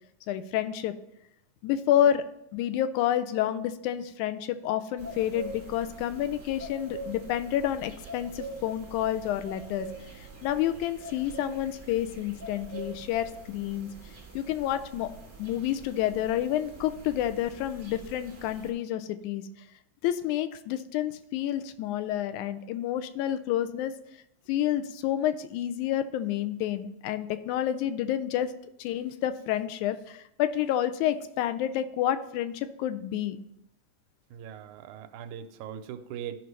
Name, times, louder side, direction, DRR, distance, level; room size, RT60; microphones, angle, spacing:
voice 1, 0.3-0.9 1.6-2.2 2.5-9.9 10.4-13.9 14.4-15.1 15.4-19.5 20.0-23.9 24.5-28.5 28.8-33.4, left 11 dB, 85° left, 11 dB, 2.0 m, -29 dB
sound 1, 5.0-18.7, right 3 dB, 30° right, 0.9 m, -44 dB
voice 2, 34.3-36.4, right 9 dB, 90° right, 8 dB, 2.0 m, -40 dB
13.5 x 5.5 x 3.2 m, 0.79 s
omnidirectional pair, 3.4 m